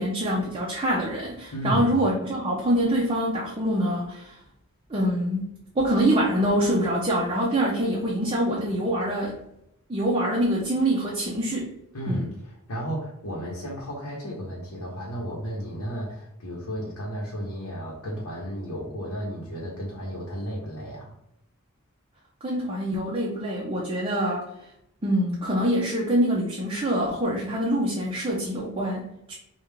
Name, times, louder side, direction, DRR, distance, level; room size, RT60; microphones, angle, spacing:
voice 1, 0.0-4.4 4.9-9.4 9.9-11.7 12.1-12.3 22.4-24.5 25.0-29.3, right 1 dB, 25° right, -4 dB, 0.6 m, -25 dB
voice 2, 1.5-2.0 11.9-21.1, equal, 85° left, -5 dB, 0.9 m, -33 dB
3.4 x 2.4 x 3.4 m, 0.80 s
head